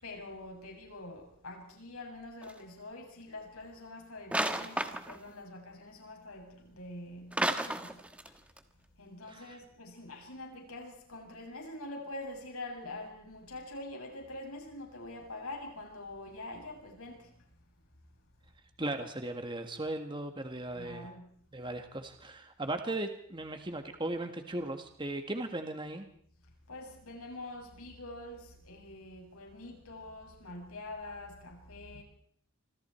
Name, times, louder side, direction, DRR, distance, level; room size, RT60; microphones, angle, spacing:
voice 1, 0.0-8.4 9.0-17.5 20.7-21.3 26.7-32.0, left 2 dB, 80° left, 7.1 m, -45 dB
sound 1, 2.4-2.6 4.3-5.3 7.3-8.3 8.6-8.7, right 1 dB, 5° right, 1.4 m, -32 dB
voice 2, 18.8-21.1 21.5-26.1, right 2 dB, 20° right, 1.7 m, -37 dB
27.0 x 25.0 x 4.5 m
head